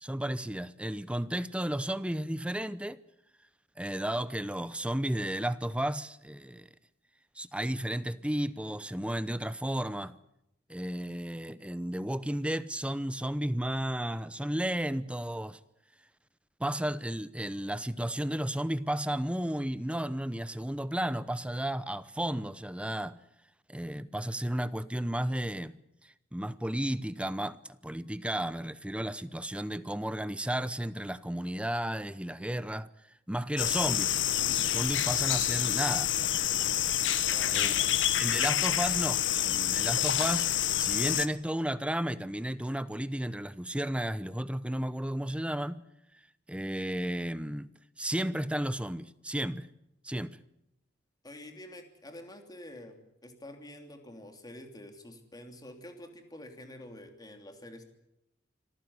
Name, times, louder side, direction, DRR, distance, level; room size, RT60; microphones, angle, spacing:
voice 1, 0.0-3.0 3.8-6.7 7.4-10.1 10.7-15.6 16.6-23.2 23.7-25.8 26.3-32.9 33.3-34.2 34.6-36.1 37.5-37.7 38.2-45.8 46.5-47.7 48.0-49.7 50.0-50.4, right 1 dB, 5° right, 0.8 m, -33 dB
sound 1, 33.6-41.3, left 11 dB, 70° left, 1.0 m, -28 dB
voice 2, 37.3-38.0 51.2-53.0 53.2-57.8, left 1 dB, 20° left, 3.0 m, -47 dB
26.0 x 14.5 x 9.6 m
head